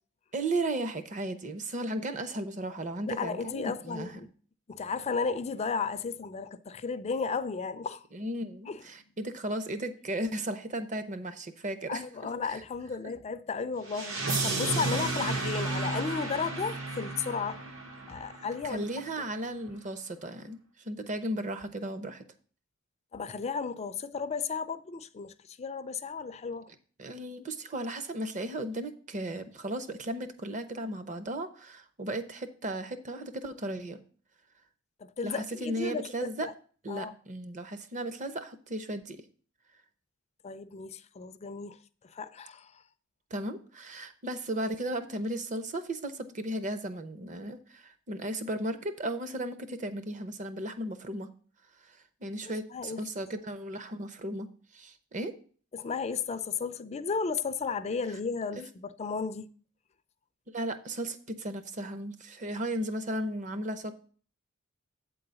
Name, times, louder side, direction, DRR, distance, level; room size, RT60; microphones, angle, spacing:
voice 1, 0.3-4.2 8.1-12.0 18.6-22.2 27.0-34.0 35.2-36.5 36.8-39.2 43.3-51.3 51.9-55.3 58.6-58.7 60.5-63.9, right 1 dB, 35° right, 0.8 m, -35 dB
voice 2, 3.1-4.3 4.7-8.1 8.7-8.8 11.9-17.6 18.1-18.8 23.1-26.7 35.0-36.1 36.4-36.5 36.9-37.1 40.4-41.8 42.1-42.8 52.4-53.0 55.7-59.5, left 5 dB, 30° left, 0.4 m, -34 dB
sound 1, 13.9-18.8, right 3 dB, 75° right, 1.7 m, -33 dB
8.5 x 3.9 x 6.8 m
head